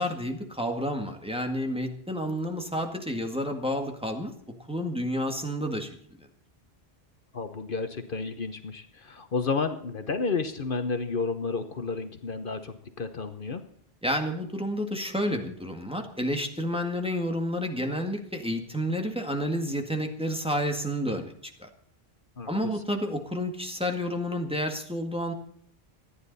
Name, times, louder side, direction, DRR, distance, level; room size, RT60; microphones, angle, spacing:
voice 1, 0.0-4.3 4.7-5.9 14.0-21.3 21.6-21.7 22.5-25.3, equal, 5° right, 3 dB, 1.8 m, -30 dB
voice 2, 7.3-13.6 22.4-22.5, left 4 dB, 60° left, 8 dB, 1.1 m, -31 dB
26.0 x 9.9 x 4.1 m, 0.66 s
omnidirectional pair, 1.0 m